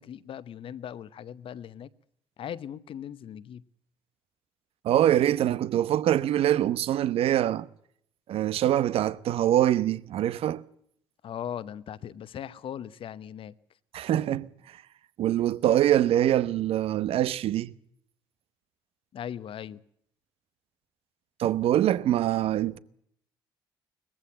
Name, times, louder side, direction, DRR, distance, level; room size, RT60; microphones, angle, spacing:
voice 1, 0.0-1.9 2.4-3.7 11.2-13.5 19.1-19.8, left 9 dB, 55° left, 0.9 m, -39 dB
voice 2, 4.8-7.7 8.3-10.6 13.9-14.5 15.2-17.7 21.4-22.8, right 12 dB, 60° right, 0.9 m, -24 dB
20.5 x 15.0 x 8.9 m
hypercardioid pair, 50°, 11 cm